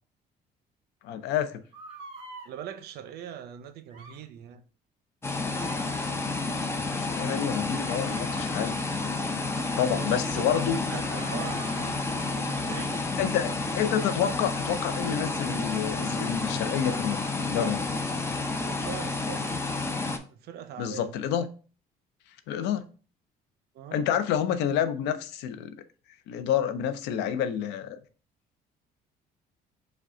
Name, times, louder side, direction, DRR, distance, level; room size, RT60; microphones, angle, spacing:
voice 1, 1.0-1.6 6.8-8.8 9.8-10.8 13.2-18.2 20.8-21.5 22.5-22.9 23.9-25.7 26.3-28.0, left 9 dB, 90° left, 0.5 m, -29 dB
sound 1, 1.7-2.5 3.9-4.2 5.5-5.9 7.7-9.6 10.9-12.3, right 3 dB, 30° right, 1.6 m, -46 dB
voice 2, 2.4-4.6 9.8-13.1 18.5-19.6 20.3-21.2 23.7-24.1, right 9 dB, 70° right, 0.6 m, -42 dB
sound 2, 5.2-20.2, left 3 dB, 15° left, 0.5 m, -30 dB
4.9 x 2.2 x 3.7 m
cardioid pair, 110°, 17 cm